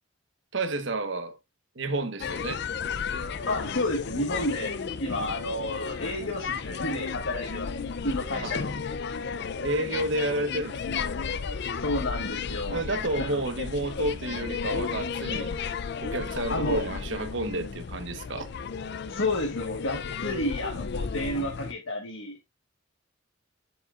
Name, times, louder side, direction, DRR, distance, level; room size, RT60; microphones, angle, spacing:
voice 1, 0.5-1.4 1.7-2.6 8.4-8.5 9.6-11.1 12.7-15.5 16.0-18.5, right 2 dB, 65° right, 1.1 m, -30 dB
sound 1, 2.2-21.7, left 5 dB, 55° left, 0.4 m, -34 dB
voice 2, 3.5-7.7 8.0-8.8 11.8-12.8 13.2-13.3 16.5-16.9 19.1-22.3, left 1 dB, 70° left, 1.4 m, -31 dB
7.2 x 6.9 x 2.4 m
head